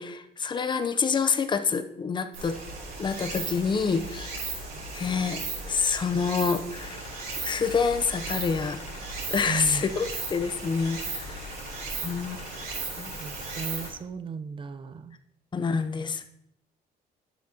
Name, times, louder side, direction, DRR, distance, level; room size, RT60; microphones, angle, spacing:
voice 1, 0.0-2.6 3.0-4.3 4.9-5.4 5.7-7.0 7.4-8.8 9.3-11.4 12.0-12.4 13.0-13.1 15.5-16.2, left 5 dB, 25° left, 9 dB, 0.7 m, -27 dB
Stream, 2.3-13.9, right 3 dB, 70° right, 3.1 m, -36 dB
sound 1, 6.8-13.9, left 4 dB, 80° left, 2.1 m, -46 dB
voice 2, 9.5-9.8 12.0-12.5 13.1-15.2, right 5 dB, 30° right, 12 dB, 0.5 m, -36 dB
10.5 x 6.1 x 2.9 m, 0.74 s
cardioid pair, 110°, 17 cm